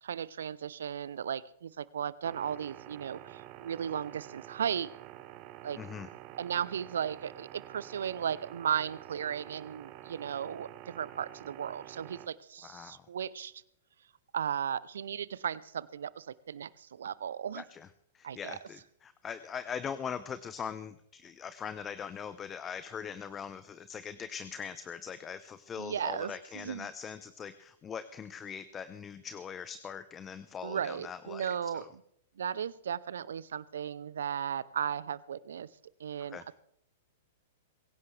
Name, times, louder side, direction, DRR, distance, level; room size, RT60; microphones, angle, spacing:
voice 1, 0.0-4.9 5.6-5.8 6.4-13.6 14.3-17.6 18.2-18.6 25.8-26.9 30.6-31.8 32.4-35.7 36.0-36.6, right 8 dB, 70° right, 20 dB, 0.7 m, -36 dB
sound 1, 2.2-12.3, right 14 dB, 45° right, 1.3 m, -49 dB
voice 2, 5.7-6.1 12.6-13.1 17.6-17.9 18.1-31.9 36.3-36.4, left 7 dB, 20° left, 13 dB, 0.9 m, -41 dB
23.5 x 16.5 x 3.4 m, 0.73 s
hypercardioid pair, 105°, 0 cm